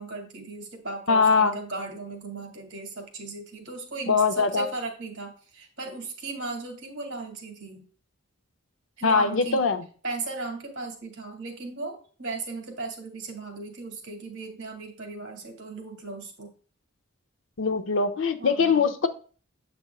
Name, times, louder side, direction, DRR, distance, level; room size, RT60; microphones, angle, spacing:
voice 1, 0.0-7.8 9.0-9.6 10.0-16.5 18.4-18.9, right 3 dB, 60° right, 3 dB, 2.2 m, -37 dB
voice 2, 1.1-1.6 4.1-4.7 9.0-9.8 17.6-19.1, left 4 dB, 65° left, 8 dB, 0.6 m, -22 dB
7.8 x 6.0 x 2.4 m, 0.39 s
head